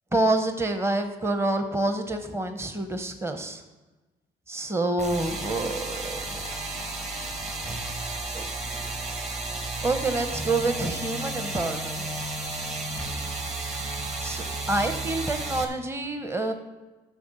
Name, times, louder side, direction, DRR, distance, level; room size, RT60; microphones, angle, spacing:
voice 1, 0.1-3.6 4.5-6.5 8.3-8.5 9.8-12.1 14.2-16.5, right 2 dB, 15° right, 6 dB, 0.9 m, -27 dB
sound 1, 5.0-15.6, right 2 dB, 35° right, 1.8 m, -33 dB
10.5 x 6.7 x 5.5 m, 1.2 s
cardioid pair, 90°, 20 cm